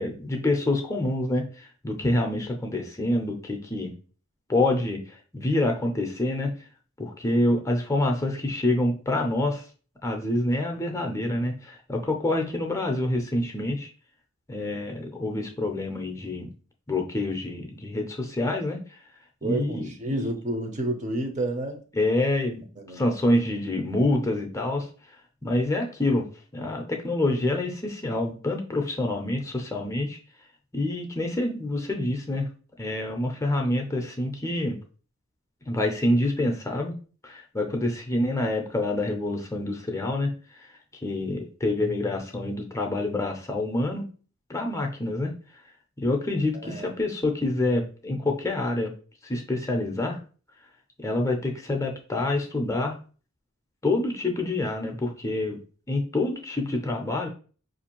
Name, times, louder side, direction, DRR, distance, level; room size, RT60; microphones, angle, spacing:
voice 1, 0.0-3.9 4.5-6.5 7.0-9.6 10.0-13.9 14.5-16.5 16.9-19.0 19.4-20.3 21.9-22.6 22.9-24.9 25.4-26.3 26.5-30.2 30.7-32.5 32.8-34.8 35.7-36.9 37.2-40.7 41.0-44.1 44.5-45.3 46.0-48.9 49.2-50.2 51.0-53.0 53.8-55.6 55.9-57.3, left 1 dB, 15° left, 0.5 m, -27 dB
voice 2, 19.4-21.8 22.8-23.0 46.6-46.9, right 2 dB, 35° right, 0.6 m, -30 dB
5.0 x 2.5 x 2.9 m
head